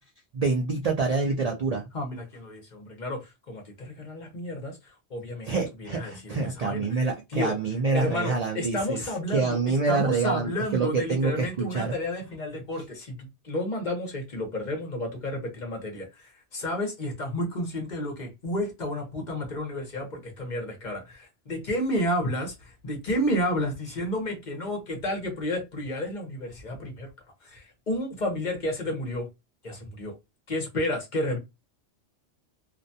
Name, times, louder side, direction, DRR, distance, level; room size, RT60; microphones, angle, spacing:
voice 1, 0.3-1.9 5.4-11.9, right 4 dB, 60° right, 0.4 m, -27 dB
voice 2, 1.9-5.5 5.8-7.6 7.9-27.1 27.4-29.3 29.6-30.2 30.5-31.4, left 1 dB, 45° left, 0.9 m, -31 dB
2.5 x 2.2 x 2.6 m
omnidirectional pair, 1.2 m